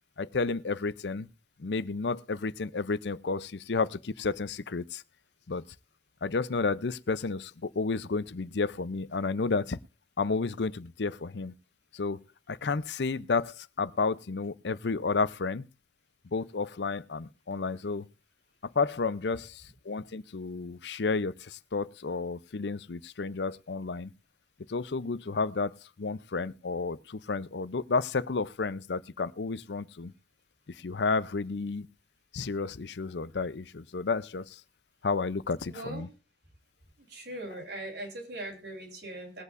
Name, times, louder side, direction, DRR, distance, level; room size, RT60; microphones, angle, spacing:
voice 1, 0.2-1.3 1.6-5.0 5.5-5.6 6.2-9.8 10.2-11.5 11.9-12.2 12.5-15.7 16.3-18.1 18.6-24.1 24.7-30.1 30.7-31.9 32.3-34.6 35.0-36.1, left 4 dB, 75° left, 0.6 m, -31 dB
voice 2, 35.6-36.1 37.0-39.4, right 1 dB, 75° right, 3.7 m, -40 dB
21.5 x 8.2 x 2.5 m
head